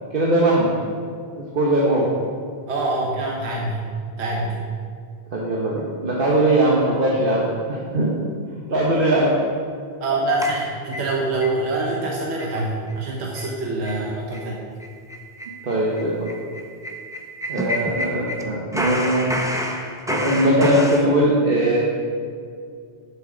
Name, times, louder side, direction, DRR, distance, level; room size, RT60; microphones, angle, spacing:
voice 1, 0.1-0.7 1.3-2.1 5.3-8.3 8.7-9.4 15.6-16.3 17.5-19.4 20.1-21.8, right 1 dB, 55° right, -4 dB, 1.2 m, -20 dB
voice 2, 2.7-3.8 4.2-4.7 10.0-14.6, right 2 dB, 75° right, -2 dB, 1.3 m, -25 dB
sound 1, 10.4-11.5 11.9-12.0 12.4-12.6 12.9-13.0 13.3-13.5 13.8-14.0 14.3-14.5 14.8-18.4 18.7-21.0, equal, 5° right, 0.5 m, -29 dB
10.5 x 6.9 x 3.8 m, 2.2 s
omnidirectional pair, 1.1 m